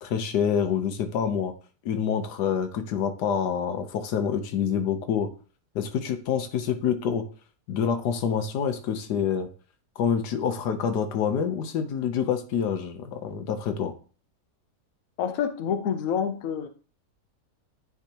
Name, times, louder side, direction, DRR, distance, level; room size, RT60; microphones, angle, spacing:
voice 1, 0.0-1.5 1.8-5.3 5.7-7.2 7.7-9.5 10.0-13.9, left 7 dB, 90° left, 7 dB, 1.4 m, -27 dB
voice 2, 15.2-16.7, left 7 dB, 65° left, 8 dB, 1.0 m, -27 dB
9.5 x 3.6 x 2.8 m, 0.38 s
omnidirectional pair, 1.7 m